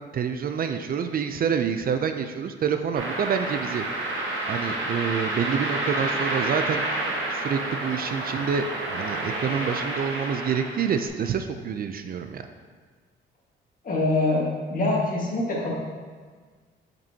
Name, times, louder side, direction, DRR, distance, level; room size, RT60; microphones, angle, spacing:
voice 1, 0.1-3.8 4.5-6.8 7.3-8.6 8.9-12.4, right 7 dB, 50° right, 7 dB, 0.4 m, -27 dB
sound 1, 3.0-11.1, right 2 dB, 90° right, 1.1 m, -29 dB
voice 2, 13.8-15.7, left 2 dB, 45° left, -3 dB, 1.6 m, -24 dB
7.3 x 5.3 x 2.8 m, 1.5 s
cardioid pair, 90°, 20 cm